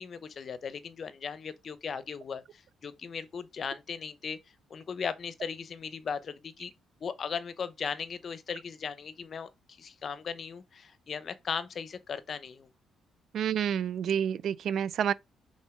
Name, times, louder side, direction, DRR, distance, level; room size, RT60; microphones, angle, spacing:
voice 1, 0.0-4.4 4.7-6.7 7.0-12.7, left 6 dB, 50° left, 0.9 m, -37 dB
voice 2, 13.3-15.1, right 8 dB, 70° right, 0.4 m, -29 dB
5.4 x 3.9 x 5.0 m
cardioid pair, 90°, 0 cm